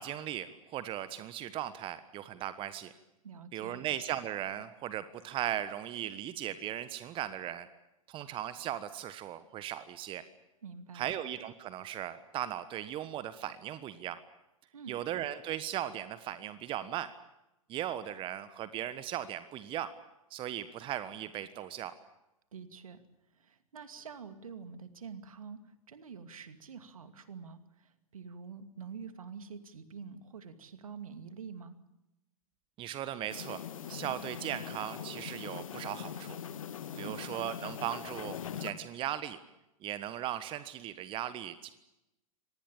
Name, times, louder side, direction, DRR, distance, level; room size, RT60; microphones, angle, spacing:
voice 1, 0.0-2.9 3.5-7.7 8.1-10.2 10.9-14.2 14.9-17.1 17.7-19.9 20.3-21.9 32.8-33.6 33.9-36.4 37.0-39.4 39.8-41.7, right 11 dB, 30° right, 13 dB, 1.3 m, -38 dB
voice 2, 3.2-3.9 10.6-11.1 14.7-15.0 22.5-23.0 23.3-25.6 25.9-31.8 36.9-37.2, right 6 dB, 70° right, 10 dB, 2.5 m, -47 dB
sound 1, 33.3-38.7, left 9 dB, 65° left, 1.8 m, -42 dB
26.0 x 19.5 x 8.7 m, 0.92 s
figure-of-eight pair, 100°, 18 cm